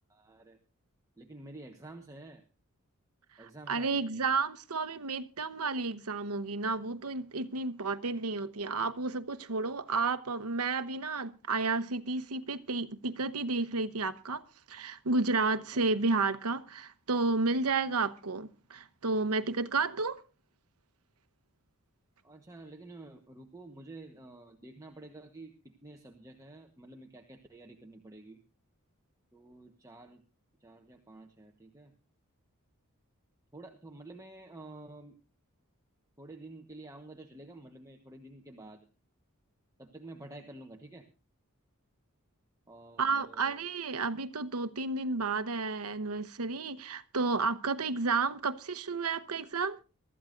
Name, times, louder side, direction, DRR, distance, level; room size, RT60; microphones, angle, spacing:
voice 1, 0.1-0.6 1.2-2.4 3.4-4.3 15.5-15.9 22.2-28.4 29.3-30.2 30.6-31.9 33.5-35.2 36.2-38.9 39.8-41.1 42.7-43.6, right 2 dB, 15° right, 1.2 m, -50 dB
voice 2, 3.7-20.2 43.0-49.8, right 3 dB, 90° right, 1.0 m, -31 dB
24.0 x 13.5 x 2.6 m
head